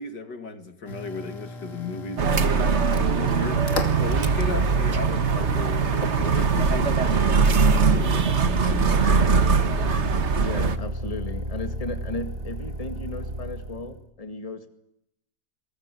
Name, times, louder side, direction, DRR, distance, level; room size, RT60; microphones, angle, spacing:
voice 1, 0.0-3.6 4.0-9.8, left 4 dB, 70° left, 9 dB, 2.8 m, -36 dB
sound 1, 0.9-6.8, left 2 dB, 45° left, 3.1 m, -38 dB
sound 2, 2.2-10.8, right 5 dB, 40° right, 1.6 m, -21 dB
Motor vehicle (road), 2.8-14.0, right 1 dB, 20° right, 2.1 m, -31 dB
voice 2, 10.4-14.7, left 2 dB, 20° left, 8 dB, 2.1 m, -35 dB
24.0 x 21.0 x 9.2 m, 0.79 s
omnidirectional pair, 1.9 m